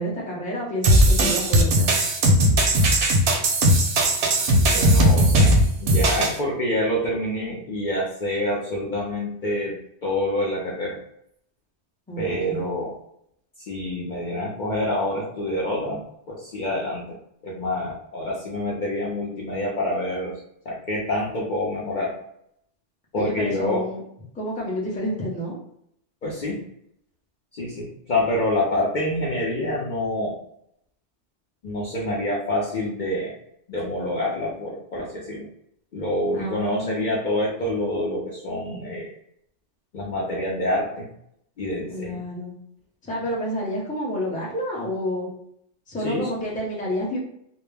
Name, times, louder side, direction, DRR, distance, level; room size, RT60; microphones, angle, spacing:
voice 1, 0.0-1.9 12.1-12.7 23.1-24.0 24.3-25.6 36.3-37.2 41.9-42.5 43.0-45.3 45.9-47.2, equal, 10° left, -4 dB, 0.5 m, -29 dB
sound 1, 0.8-6.4, right 1 dB, 65° right, 0.7 m, -18 dB
voice 2, 4.7-11.0 12.2-13.0 13.7-17.2 17.4-22.2 23.1-23.9 26.2-26.7 27.5-30.4 31.6-33.3 33.7-35.5 35.9-39.1 39.9-41.1 41.6-42.2 46.0-46.3, left 1 dB, 55° left, -4 dB, 0.6 m, -27 dB
2.2 x 2.0 x 3.2 m, 0.72 s
omnidirectional pair, 1.2 m